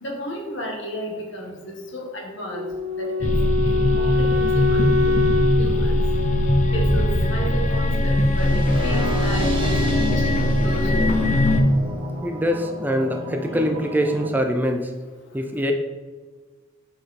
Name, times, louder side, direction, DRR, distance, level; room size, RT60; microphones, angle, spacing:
voice 1, 0.0-2.7 3.0-3.3 3.6-5.1 5.6-6.0 6.7-11.1, equal, 65° left, -1 dB, 1.7 m, -32 dB
Wind instrument woodwind instrument, 2.5-7.6, left 4 dB, 60° right, 0.6 m, -25 dB
sound 1, 3.2-11.6, left 1 dB, 40° left, 0.6 m, -20 dB
sound 2, 8.4-14.4, equal, 25° right, 1.3 m, -31 dB
voice 2, 11.0-11.4 12.2-14.9 15.3-15.7, equal, 10° right, 4 dB, 0.4 m, -24 dB
6.3 x 5.2 x 4.2 m, 1.4 s
head